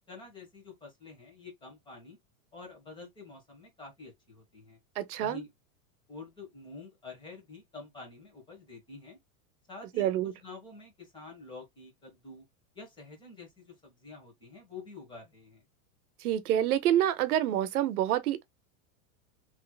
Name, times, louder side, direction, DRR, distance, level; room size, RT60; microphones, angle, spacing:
voice 1, 0.1-2.2 2.5-4.8 5.2-5.5 6.1-9.2 9.7-12.4 12.7-15.6, left 3 dB, 10° left, 1.3 m, -48 dB
voice 2, 5.0-5.4 10.0-10.3 16.2-18.5, right 11 dB, 85° right, 0.8 m, -27 dB
3.2 x 3.1 x 2.2 m
supercardioid pair, 170°, 43 cm